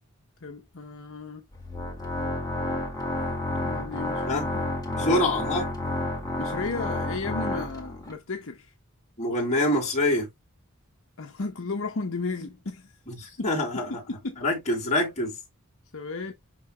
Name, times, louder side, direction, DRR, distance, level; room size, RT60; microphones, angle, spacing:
voice 1, 0.4-1.4 3.6-4.6 5.0-5.2 6.4-8.7 11.2-12.9 13.4-13.5 14.1-14.4 15.9-16.3, left 3 dB, 65° left, 0.9 m, -34 dB
Organ, 1.5-8.1, left 1 dB, 20° left, 2.1 m, -30 dB
voice 2, 4.9-5.7 9.2-10.3 13.1-14.0 14.4-15.4, left 1 dB, 35° left, 4.2 m, -25 dB
11.0 x 3.8 x 2.2 m
head